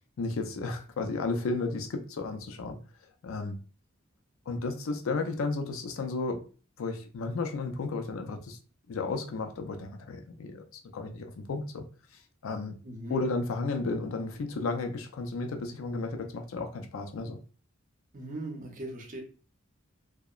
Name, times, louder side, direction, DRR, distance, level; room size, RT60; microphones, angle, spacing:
voice 1, 0.2-2.8 3.2-3.6 4.5-6.4 6.8-8.6 8.9-11.8 12.4-12.8 13.1-17.4, left 3 dB, 80° left, 5 dB, 0.4 m, -33 dB
voice 2, 12.8-13.2 18.1-19.2, right 1 dB, 40° right, 1 dB, 0.6 m, -39 dB
2.8 x 2.0 x 2.3 m, 0.38 s
head